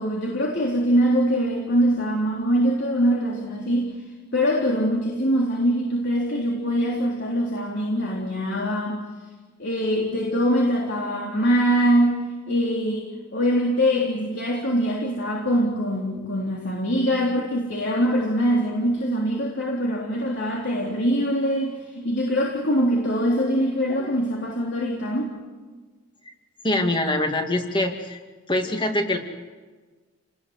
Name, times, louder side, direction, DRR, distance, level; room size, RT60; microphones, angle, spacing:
voice 1, 0.0-3.9 4.3-9.0 9.6-12.2 12.5-13.1 13.3-25.3, equal, 55° left, -1 dB, 3.6 m, -23 dB
voice 2, 26.6-28.2 28.5-29.2, left 1 dB, 20° left, 4 dB, 2.4 m, -24 dB
30.0 x 19.5 x 8.0 m, 1.4 s
head